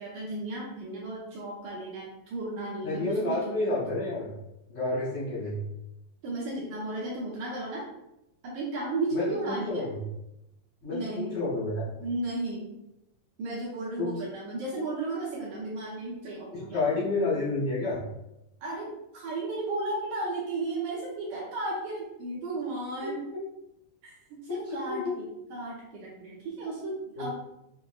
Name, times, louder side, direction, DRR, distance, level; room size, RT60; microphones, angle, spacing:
voice 1, 0.0-3.8 6.2-7.8 8.4-9.9 10.9-11.4 12.0-12.7 13.4-16.8 18.6-23.2 24.0-24.2 24.4-27.3, right 2 dB, 75° right, -6 dB, 1.8 m, -34 dB
voice 2, 2.8-4.3 4.7-5.6 9.1-9.9 10.8-11.9 14.0-14.2 16.5-18.0 24.7-25.1 27.1-27.3, left 2 dB, 80° left, -11 dB, 0.7 m, -30 dB
6.0 x 2.0 x 2.3 m, 0.88 s
omnidirectional pair, 4.0 m